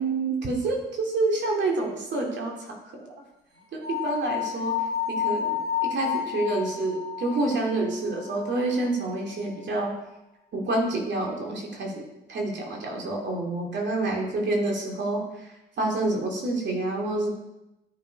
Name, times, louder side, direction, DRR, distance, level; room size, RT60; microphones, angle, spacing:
voice 1, 0.0-3.0 3.7-4.8 5.1-9.9 10.5-12.0 12.3-17.3, right 2 dB, 65° right, 0 dB, 2.6 m, -28 dB
sound 1, 3.8-8.9, left 9 dB, 85° right, 4.2 m, -31 dB
10.0 x 9.5 x 4.7 m, 0.94 s
cardioid pair, 90°, 20 cm